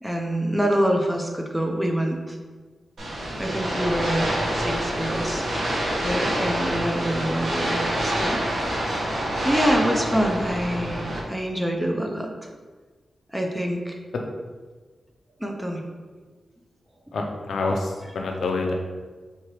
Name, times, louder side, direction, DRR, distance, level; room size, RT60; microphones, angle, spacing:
voice 1, 0.0-2.4 3.4-5.4 6.0-8.4 9.4-11.0 11.3-12.3 13.3-14.0 15.4-15.8, equal, 10° right, 2 dB, 0.6 m, -26 dB
sound 1, 3.0-11.2, right 1 dB, 85° right, 1.1 m, -26 dB
voice 2, 17.1-18.7, left 3 dB, 90° left, 2 dB, 0.5 m, -27 dB
4.5 x 2.8 x 3.0 m, 1.4 s
wide cardioid pair, 85°, 0 cm